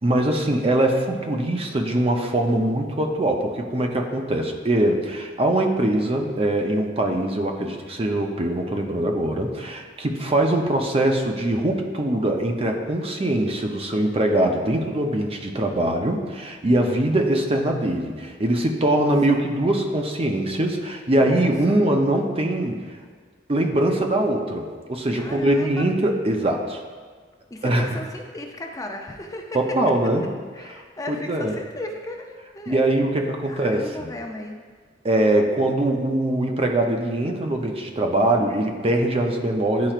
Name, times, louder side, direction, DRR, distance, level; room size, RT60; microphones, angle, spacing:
voice 1, 0.0-22.8 23.5-26.8 27.6-27.9 29.5-30.2 31.1-31.5 32.7-34.1 35.0-39.9, right 1 dB, 35° right, 3 dB, 0.6 m, -22 dB
voice 2, 18.9-19.4 21.2-21.8 25.1-25.9 27.5-29.6 30.5-32.8 33.5-34.6, left 1 dB, 20° left, 2 dB, 0.5 m, -36 dB
10.5 x 4.4 x 2.4 m, 1.5 s
head